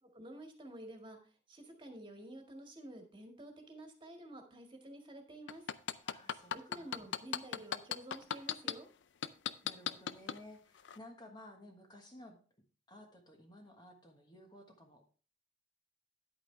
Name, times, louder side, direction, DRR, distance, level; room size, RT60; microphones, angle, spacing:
voice 1, 0.0-5.6 6.5-8.9, right 1 dB, 25° right, 3 dB, 1.8 m, -50 dB
sound 1, 5.5-8.7 9.2-10.4 10.9-11.0, left 8 dB, 70° left, 0.5 m, -35 dB
voice 2, 6.0-7.0 9.6-12.4 12.9-15.0, left 1 dB, 25° left, 3 dB, 1.3 m, -55 dB
10.5 x 8.6 x 3.3 m, 0.38 s
head